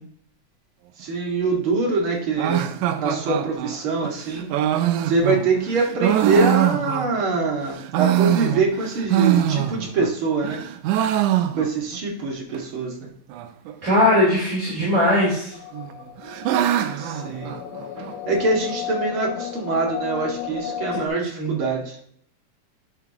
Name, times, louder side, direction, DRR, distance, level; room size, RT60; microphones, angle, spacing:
voice 1, 1.0-4.5 5.0-10.6 11.5-13.1 17.0-17.5 18.3-22.0, right 3 dB, 45° right, -1 dB, 2.6 m, -24 dB
sound 1, 2.4-7.4 7.8-10.1 10.4-12.0 12.2-12.3 12.5-12.6 13.3-13.7 14.8-15.4 15.7-18.1, right 11 dB, 85° right, 2.1 m, -23 dB
voice 2, 13.8-15.5 20.9-21.6, left 1 dB, 25° right, -6 dB, 3.7 m, -20 dB
sound 2, 15.5-21.1, left 10 dB, 75° left, 1.2 m, -34 dB
11.0 x 6.7 x 2.9 m, 0.65 s
omnidirectional pair, 3.5 m